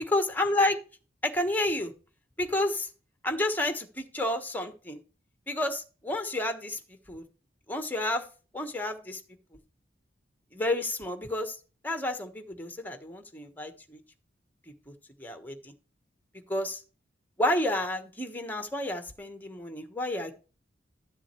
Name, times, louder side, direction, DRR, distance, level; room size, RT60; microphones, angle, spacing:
voice 1, 0.1-0.8 1.2-1.9 2.4-2.9 3.2-5.0 5.5-6.8 7.1-7.2 7.7-8.2 8.5-9.2 10.5-11.6 11.8-14.0 15.2-15.7 16.5-16.8 17.4-20.3, left 1 dB, 10° left, 7 dB, 1.3 m, -30 dB
12.5 x 7.4 x 3.2 m, 0.35 s
head